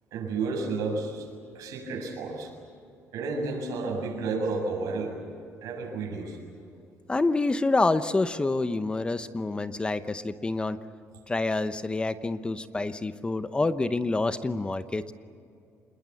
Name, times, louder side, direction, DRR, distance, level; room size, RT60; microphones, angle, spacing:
voice 1, 0.1-1.3 1.5-2.6 3.1-5.2 5.6-6.4, right 3 dB, 80° right, 2 dB, 7.0 m, -31 dB
voice 2, 7.1-10.8 11.3-15.1, left 2 dB, 15° left, 11 dB, 0.9 m, -27 dB
27.0 x 21.5 x 8.5 m, 2.5 s
cardioid pair, 125°, 6 cm